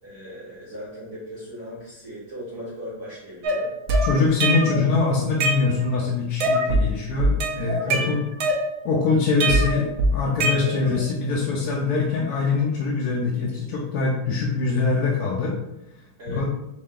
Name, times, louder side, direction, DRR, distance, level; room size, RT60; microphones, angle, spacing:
voice 1, 0.0-3.7 7.8-8.2 10.5-10.9 16.2-16.5, equal, 45° right, -10 dB, 1.4 m, -37 dB
sound 1, 3.4-4.9 5.2-6.0 6.4-6.9 7.2-9.0 9.4-11.0, right 1 dB, 75° right, 0.7 m, -23 dB
voice 2, 4.0-8.2 8.8-15.5 16.3-16.4, left 4 dB, 70° left, -2 dB, 0.9 m, -23 dB
3.7 x 3.3 x 3.7 m, 0.90 s
omnidirectional pair, 2.3 m